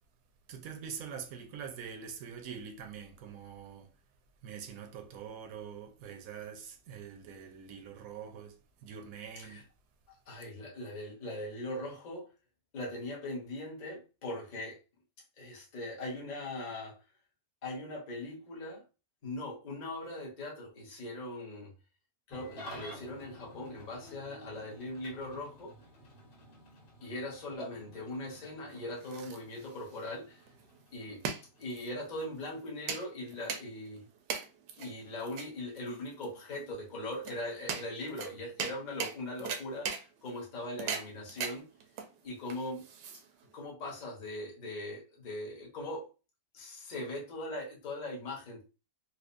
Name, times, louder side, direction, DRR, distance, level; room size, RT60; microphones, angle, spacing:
voice 1, 0.5-3.9 4.4-9.6, right 7 dB, 65° right, 1.0 m, -44 dB
voice 2, 10.3-12.3 12.7-14.8 15.4-17.0 17.6-18.8 19.2-21.7 22.3-25.7 27.0-30.4 30.9-31.2 31.6-34.0 34.8-41.6 42.2-42.9 43.5-46.1 46.5-48.6, left 1 dB, 30° left, 0.9 m, -40 dB
Engine starting / Idling, 22.3-32.9, equal, 80° left, 1.8 m, -52 dB
sound 1, 28.7-43.6, right 6 dB, 80° right, 1.2 m, -41 dB
4.2 x 2.4 x 2.5 m
omnidirectional pair, 1.8 m